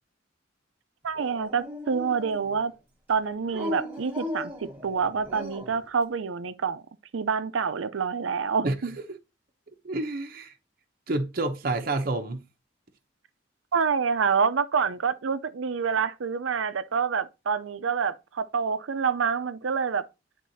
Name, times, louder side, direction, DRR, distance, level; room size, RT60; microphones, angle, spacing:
voice 1, 1.0-2.7 3.1-6.8 7.1-8.9 13.7-20.0, right 6 dB, 90° right, 0.5 m, -27 dB
Dog, 1.2-2.7 3.5-5.8, left 1 dB, 10° right, 1.3 m, -37 dB
voice 2, 8.6-9.0 9.8-10.5 11.1-12.4, right 2 dB, 50° right, 0.7 m, -29 dB
10.0 x 3.6 x 2.7 m
head